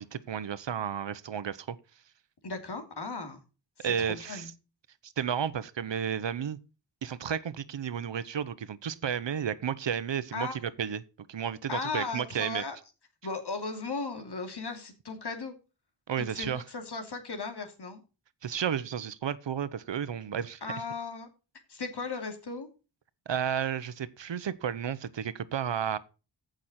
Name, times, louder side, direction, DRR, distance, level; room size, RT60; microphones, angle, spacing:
voice 1, 0.0-1.8 3.8-4.5 5.0-6.6 7.0-11.0 11.3-12.6 16.1-16.6 18.4-20.6 23.3-26.0, right 8 dB, 85° right, 1.0 m, -32 dB
voice 2, 2.4-3.4 3.8-4.5 10.3-10.6 11.7-12.8 13.2-15.5 16.2-18.0 20.6-21.3 21.7-22.7, left 4 dB, 65° left, 2.8 m, -36 dB
15.0 x 6.4 x 4.3 m
wide cardioid pair, 110°, 42 cm